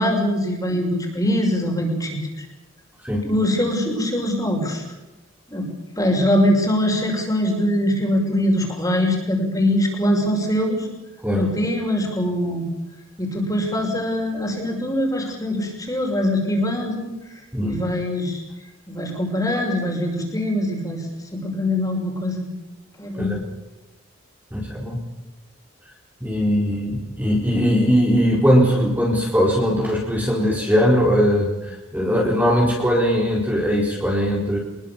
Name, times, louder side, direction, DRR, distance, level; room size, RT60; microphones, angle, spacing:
voice 1, 0.0-2.5 3.2-4.8 5.5-5.7 6.0-10.9 11.4-12.6 13.2-17.1 17.6-18.4 18.9-21.1 21.3-22.4 23.0-23.3, left 1 dB, 15° left, 2 dB, 6.2 m, -22 dB
voice 2, 24.5-25.0 26.2-34.6, equal, 10° right, -2 dB, 4.3 m, -20 dB
26.5 x 21.5 x 7.3 m, 1.0 s
head